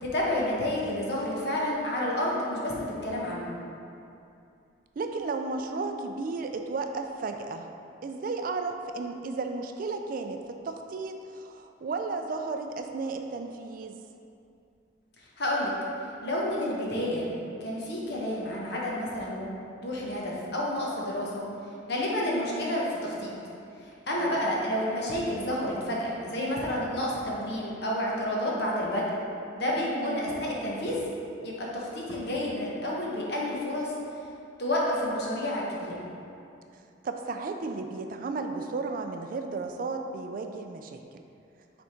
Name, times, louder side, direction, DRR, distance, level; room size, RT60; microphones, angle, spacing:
voice 1, 0.0-3.5 15.4-15.7 16.2-17.3 17.6-19.6 19.8-21.4 21.9-23.3 23.8-29.1 29.5-31.0 31.4-33.9 34.6-36.0, left 1 dB, 55° left, -4 dB, 1.1 m, -30 dB
voice 2, 5.0-7.7 8.0-14.0 22.4-22.8 24.2-24.5 30.0-30.4 37.0-41.0, right 3 dB, 45° right, 6 dB, 0.3 m, -34 dB
6.2 x 3.5 x 4.4 m, 2.6 s
head